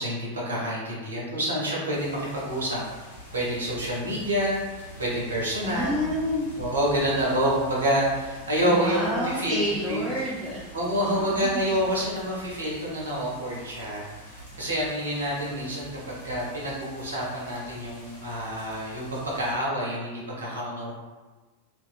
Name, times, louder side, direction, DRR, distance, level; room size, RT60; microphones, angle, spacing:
voice 1, 0.0-2.8 3.3-4.6 5.0-6.0 6.6-10.0 10.7-14.1 14.6-20.9, equal, 70° right, -5 dB, 0.8 m, -27 dB
sound 1, 1.9-19.5, equal, 65° left, 0.9 m, -45 dB
voice 2, 5.6-6.5 8.7-10.6 11.0-11.7, left 1 dB, ahead, -10 dB, 0.5 m, -29 dB
2.7 x 2.1 x 2.5 m, 1.3 s
figure-of-eight pair, 90°, 0 cm